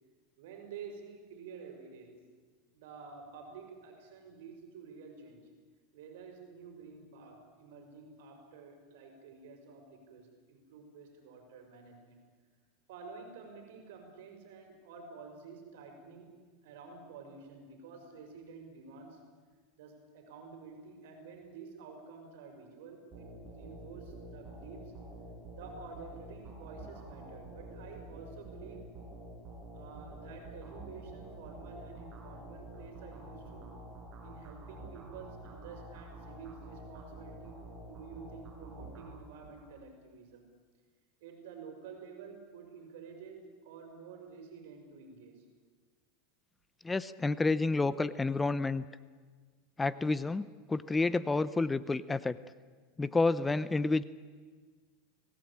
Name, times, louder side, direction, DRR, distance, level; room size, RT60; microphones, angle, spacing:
voice 1, 0.4-2.3 2.7-5.5 5.9-12.2 12.9-16.4 16.6-19.2 19.8-24.9 25.5-28.9 29.7-33.8 34.2-40.5 41.2-45.4, right 5 dB, 75° right, 4 dB, 5.7 m, -50 dB
sound 1, 23.1-39.7, right 1 dB, 30° right, 7.5 m, -48 dB
voice 2, 46.8-48.9 49.8-52.4 53.0-54.0, left 3 dB, 10° left, 16 dB, 0.7 m, -30 dB
25.0 x 18.5 x 8.8 m, 1.5 s
supercardioid pair, 135°, 0 cm